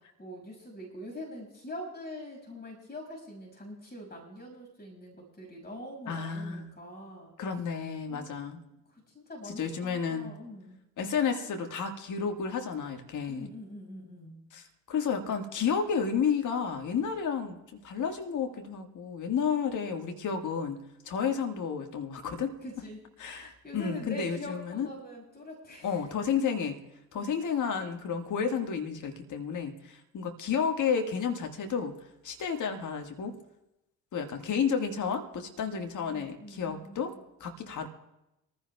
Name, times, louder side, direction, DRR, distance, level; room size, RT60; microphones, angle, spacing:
voice 1, 0.2-7.3 8.1-10.8 13.3-14.4 22.6-23.0 23.3-26.0 27.1-27.3 35.8-37.2, left 1 dB, 25° left, 0 dB, 6.0 m, -44 dB
voice 2, 6.1-6.7 7.4-8.6 9.4-10.4 11.0-13.5 14.5-22.5 23.2-24.9 25.8-26.8 27.1-32.0 32.2-33.3 34.1-37.1 37.4-37.9, left 6 dB, 45° left, 4 dB, 1.7 m, -31 dB
25.5 x 15.0 x 2.3 m, 0.90 s
figure-of-eight pair, 45°, 40 cm